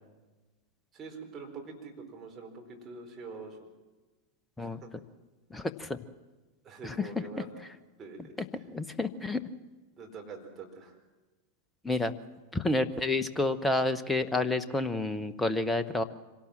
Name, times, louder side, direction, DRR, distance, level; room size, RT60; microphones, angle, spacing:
voice 1, 0.9-3.6 4.6-4.9 6.6-7.5 8.0-8.6 10.0-11.0, right 4 dB, 25° right, 1 dB, 4.4 m, -45 dB
voice 2, 5.5-6.0 6.8-7.1 8.7-9.4 11.8-12.1 12.5-16.0, left 2 dB, 10° left, 12 dB, 1.0 m, -29 dB
25.5 x 17.5 x 7.5 m, 1.2 s
figure-of-eight pair, 90°, 0 cm